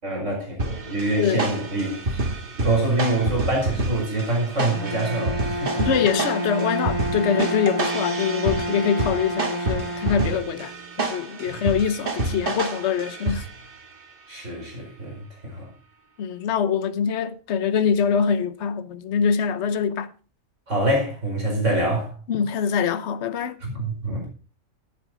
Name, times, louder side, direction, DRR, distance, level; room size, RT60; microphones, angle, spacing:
voice 1, 0.0-2.2 2.6-5.9 11.5-11.6 14.3-15.2 15.4-15.7 20.7-22.1 23.6-24.3, right 1 dB, 55° right, 5.3 m, -25 dB
sound 1, 0.6-13.8, right 2 dB, 40° right, 1.7 m, -29 dB
voice 2, 1.2-1.5 5.8-13.5 16.2-20.1 22.3-23.6, left 7 dB, 55° left, 1.1 m, -24 dB
Bowed string instrument, 4.7-10.8, right 1 dB, 90° right, 2.8 m, -29 dB
14.0 x 9.1 x 3.9 m
omnidirectional pair, 1.5 m